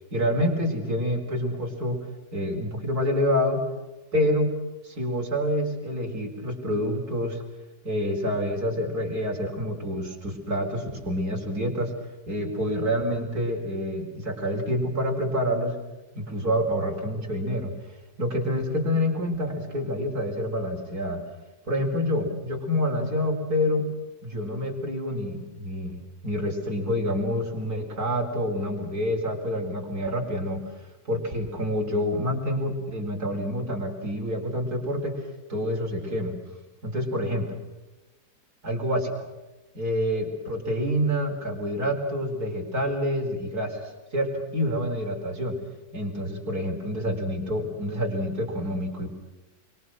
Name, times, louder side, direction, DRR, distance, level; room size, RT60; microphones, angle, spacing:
voice 1, 0.1-2.0 2.3-3.6 4.1-4.5 4.8-7.4 7.8-11.9 12.3-15.8 16.1-17.7 18.2-21.2 21.7-23.9 24.2-30.6 31.1-35.2 35.5-36.4 36.8-37.5 38.6-39.3 39.7-45.6 45.9-49.1, equal, 50° right, 2 dB, 5.1 m, -27 dB
27.5 x 25.0 x 6.2 m, 1.1 s
omnidirectional pair, 2.0 m